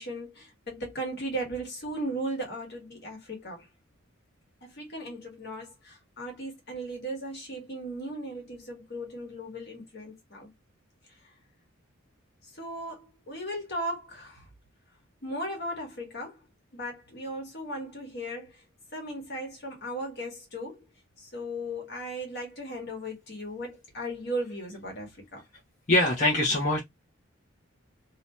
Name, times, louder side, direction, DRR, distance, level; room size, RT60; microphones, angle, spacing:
voice 1, 0.0-3.7 4.6-10.5 12.4-14.5 15.2-16.4 16.7-18.6 18.9-20.8 21.2-25.4, right 1 dB, 50° left, 1.2 m, -37 dB
voice 2, 25.9-26.8, left 1 dB, 35° left, 0.6 m, -23 dB
2.7 x 2.2 x 2.8 m
head